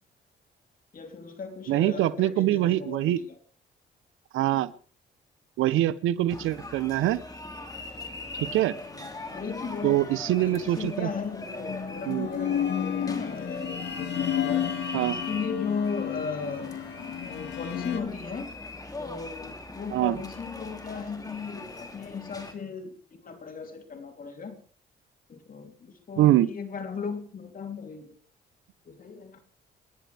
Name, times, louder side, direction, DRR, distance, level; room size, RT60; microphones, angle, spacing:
voice 1, 0.9-3.4 8.9-10.1 10.4-14.7 15.1-16.7 17.2-18.5 19.0-24.6 25.3-28.2 28.8-29.4, left 5 dB, 45° left, 5 dB, 3.3 m, -36 dB
voice 2, 1.7-3.2 4.3-4.7 5.6-7.2 8.4-8.8 9.8-11.1 12.1-12.3 14.9-15.2 19.9-20.2 26.2-26.5, right 14 dB, 85° right, 17 dB, 0.8 m, -24 dB
sound 1, 6.3-22.5, left 2 dB, 20° left, 2.5 m, -41 dB
sound 2, 9.6-10.6 11.4-18.0, left 9 dB, 60° left, 2.0 m, -32 dB
28.5 x 10.5 x 3.4 m, 0.41 s
cardioid pair, 90°, 20 cm